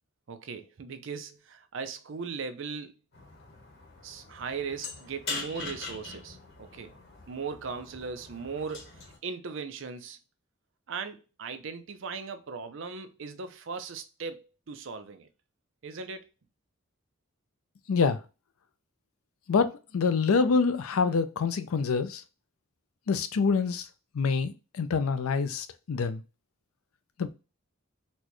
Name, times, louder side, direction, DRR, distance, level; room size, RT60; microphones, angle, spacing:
voice 1, 0.3-2.9 4.0-6.9 7.3-8.9 9.2-10.2 10.9-15.3 15.8-16.3, right 5 dB, 60° right, 0.5 m, -38 dB
sound 1, 3.1-9.2, left 3 dB, 50° left, 1.0 m, -42 dB
voice 2, 19.5-22.2 23.1-23.9 24.1-26.2 27.2-27.3, left 5 dB, 80° left, 0.4 m, -26 dB
4.2 x 2.2 x 3.0 m
head